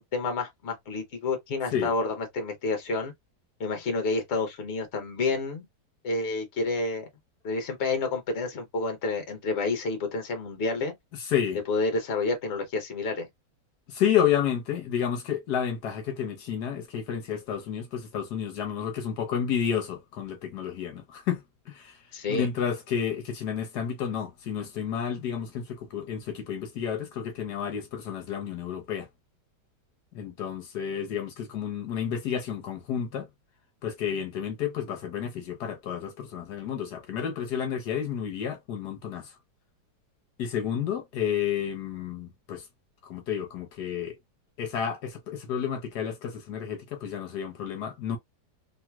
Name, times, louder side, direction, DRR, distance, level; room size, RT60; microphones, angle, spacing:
voice 1, 0.0-3.1 3.6-5.6 6.0-7.1 7.4-10.9 11.7-13.3 22.1-22.5, left 3 dB, 45° left, 1.2 m, -29 dB
voice 2, 11.2-11.6 13.9-21.4 21.7-22.0 22.3-29.1 30.1-33.3 33.8-39.3 40.4-42.7 43.0-44.2 44.6-48.2, left 8 dB, 70° left, 1.3 m, -30 dB
3.2 x 2.9 x 2.3 m
omnidirectional pair, 1.8 m